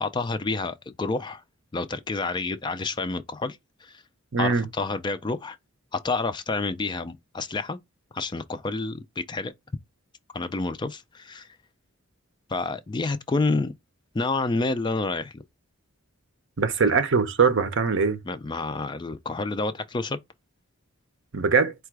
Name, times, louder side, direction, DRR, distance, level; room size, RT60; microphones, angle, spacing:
voice 1, 0.0-1.4 1.7-4.0 4.4-5.6 5.9-7.8 8.1-9.5 10.3-11.5 12.5-13.7 14.1-15.4 18.2-20.2, left 3 dB, 20° left, 0.3 m, -29 dB
voice 2, 4.3-4.7 16.6-18.2 21.3-21.7, right 5 dB, 60° right, 0.7 m, -22 dB
4.6 x 2.3 x 4.6 m
head